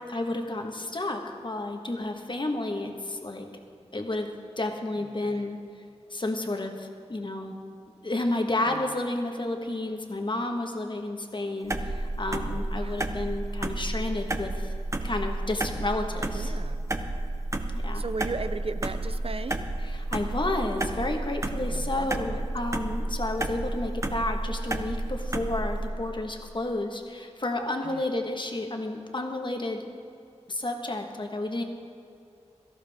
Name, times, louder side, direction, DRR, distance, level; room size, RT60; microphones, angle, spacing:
voice 1, 0.1-3.5 3.9-4.3 4.6-5.6 6.1-7.6 8.0-14.7 15.0-16.5 17.8-18.0 19.8-29.8 30.5-31.6, left 2 dB, 45° left, 4 dB, 1.4 m, -31 dB
voice 2, 5.0-5.5 8.6-8.8 12.4-13.0 16.3-16.8 17.9-19.7 21.7-22.5 27.8-28.1, right 3 dB, 55° right, 11 dB, 0.6 m, -37 dB
sound 1, 11.7-25.9, right 2 dB, 25° right, 0.9 m, -31 dB
17.5 x 14.0 x 3.6 m, 2.6 s
wide cardioid pair, 70°, 12 cm